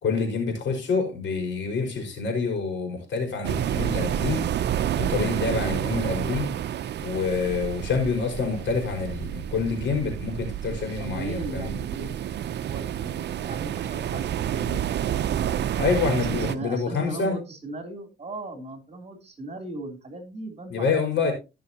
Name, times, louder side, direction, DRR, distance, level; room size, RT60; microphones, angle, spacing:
voice 1, 0.0-4.5 5.0-6.5 7.0-11.7 15.8-17.4 20.7-21.3, left 4 dB, 70° left, 3 dB, 4.9 m, -27 dB
sound 1, 3.4-16.6, right 10 dB, 60° right, 0.6 m, -29 dB
voice 2, 11.0-14.8 16.2-21.3, right 2 dB, 30° right, 4 dB, 3.2 m, -38 dB
17.0 x 6.2 x 2.9 m, 0.28 s
cardioid pair, 90°, 20 cm